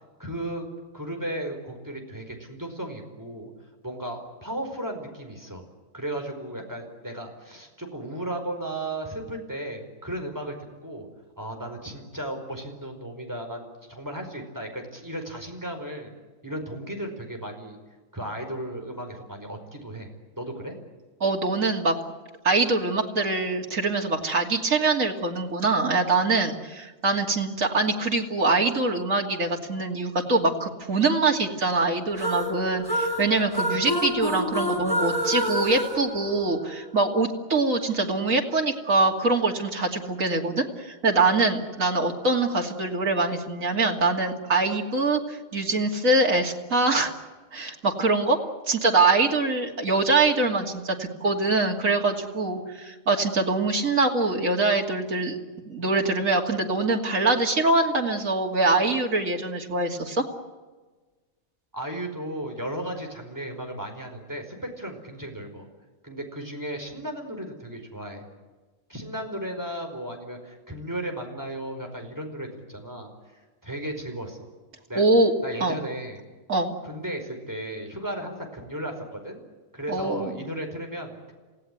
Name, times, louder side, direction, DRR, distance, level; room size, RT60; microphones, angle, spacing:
voice 1, 0.2-0.7 0.9-3.5 3.8-5.6 5.9-10.5 10.8-11.1 11.4-13.6 13.9-16.1 16.4-17.8 18.1-20.7 61.7-65.7 66.0-68.2 68.9-74.5 74.9-75.0 75.4-76.2 76.8-79.4 79.7-81.3, right 1 dB, 15° right, 3 dB, 4.8 m, -35 dB
voice 2, 21.2-21.9 22.4-47.1 47.5-48.4 48.7-55.4 55.7-60.2 75.0-75.3 75.6-75.7 76.5-76.7 79.9-80.4, right 3 dB, 80° right, 1 dB, 3.0 m, -24 dB
sound 1, 32.2-36.9, equal, 15° left, 4.9 m, -28 dB
28.0 x 17.5 x 9.5 m, 1.3 s
omnidirectional pair, 1.4 m